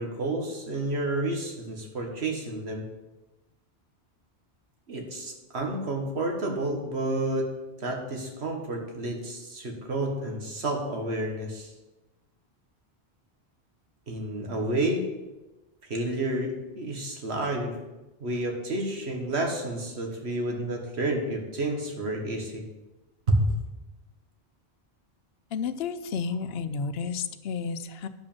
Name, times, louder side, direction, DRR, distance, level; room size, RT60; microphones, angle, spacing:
voice 1, 0.0-2.9 4.9-7.5 7.8-11.7 14.1-15.1 15.8-17.8 18.2-22.7 23.3-23.5, right 1 dB, 75° right, 2 dB, 1.9 m, -30 dB
voice 2, 25.5-28.1, left 5 dB, 70° left, 10 dB, 0.9 m, -31 dB
10.0 x 5.2 x 7.2 m, 1.1 s
omnidirectional pair, 1.1 m